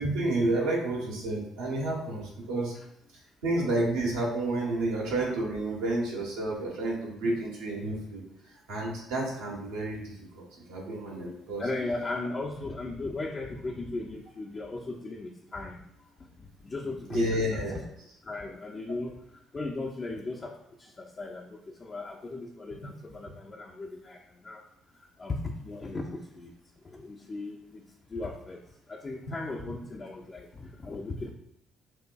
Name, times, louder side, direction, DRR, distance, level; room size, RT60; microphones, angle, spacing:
voice 1, 0.0-2.7 3.4-8.2 8.7-11.6 17.1-17.8, right 2 dB, 75° right, -3 dB, 1.2 m, -30 dB
voice 2, 11.6-15.8 16.6-17.8 18.2-19.1 19.5-24.6 25.2-26.5 26.8-27.8 28.1-28.6 28.9-31.3, left 2 dB, 35° left, -1 dB, 0.5 m, -37 dB
6.2 x 2.5 x 2.3 m, 0.79 s
figure-of-eight pair, 45°, 0 cm